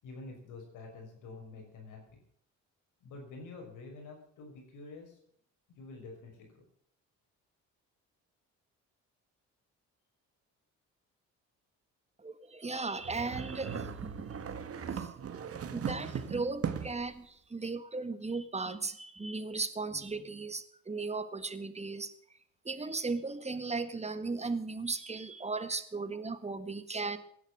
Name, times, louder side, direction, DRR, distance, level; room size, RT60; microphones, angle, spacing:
voice 1, 0.0-2.0 3.0-5.2 5.8-6.6, left 3 dB, 85° left, 2 dB, 6.1 m, -48 dB
voice 2, 12.2-13.9 14.9-15.5 15.7-22.1 22.6-27.2, right 3 dB, 20° right, 12 dB, 1.7 m, -36 dB
sound 1, 13.0-17.1, right 7 dB, 50° right, 1.8 m, -38 dB
16.5 x 11.0 x 6.2 m, 0.66 s
cardioid pair, 90°, 30 cm